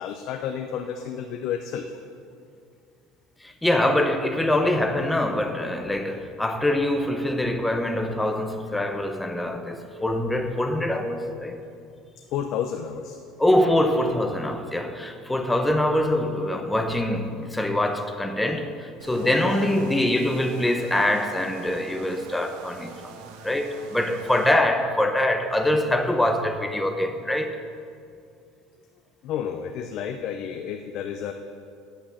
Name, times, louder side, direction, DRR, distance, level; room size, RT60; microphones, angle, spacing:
voice 1, 0.0-1.9 12.3-13.2 19.2-19.7 29.2-31.3, left 8 dB, 55° left, 5 dB, 0.6 m, -31 dB
voice 2, 3.4-11.6 13.4-23.1 23.4-27.6, left 1 dB, 5° left, 6 dB, 0.8 m, -24 dB
sound 1, 19.0-24.5, right 6 dB, 80° right, 1.2 m, -44 dB
9.0 x 7.7 x 7.2 m, 2.4 s
cardioid pair, 145°, 0 cm